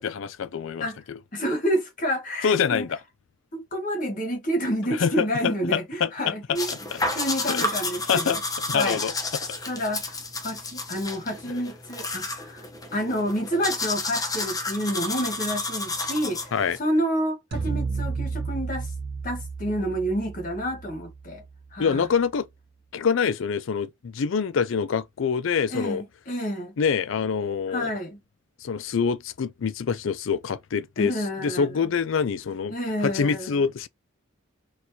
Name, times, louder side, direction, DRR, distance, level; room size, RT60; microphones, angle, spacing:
voice 1, 0.0-1.2 2.4-3.0 5.0-7.0 7.5-7.7 8.1-8.4 8.7-9.1 16.5-16.8 21.8-22.5 22.9-26.0 26.8-27.9 28.6-31.1 31.4-32.7 33.0-33.9, left 6 dB, 70° left, 0.4 m, -26 dB
voice 2, 1.3-2.9 3.5-6.7 7.1-8.4 8.7-9.0 9.7-12.7 12.9-16.5 16.8-18.9 19.2-21.4 21.7-22.1 25.7-26.7 27.7-28.2 31.0-31.7 32.7-33.5, equal, 40° left, 1.3 m, -29 dB
sound 1, 6.5-16.8, left 2 dB, 20° left, 0.8 m, -31 dB
sound 2, 17.5-21.8, right 4 dB, 50° right, 0.4 m, -32 dB
4.3 x 2.5 x 2.7 m
head